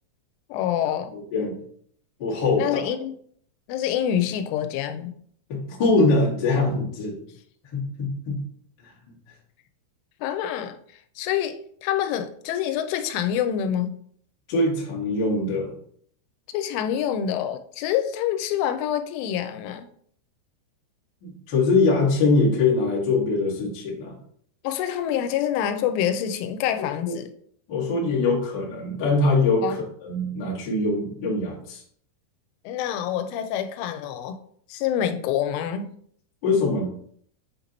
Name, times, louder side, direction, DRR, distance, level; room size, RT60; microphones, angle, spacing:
voice 1, 0.5-1.1 2.6-3.1 3.7-5.1 10.2-10.8 11.2-14.0 16.5-19.9 24.6-27.3 29.6-29.8 32.7-34.4 34.7-36.0, left 10 dB, 85° left, 8 dB, 3.0 m, -26 dB
voice 2, 1.1-1.5 2.2-2.6 5.5-7.1 7.7-8.4 14.5-15.7 21.2-24.1 27.1-27.2 27.7-31.8 36.4-36.9, left 3 dB, 65° left, -6 dB, 1.1 m, -23 dB
8.1 x 3.0 x 3.9 m, 0.62 s
omnidirectional pair, 5.5 m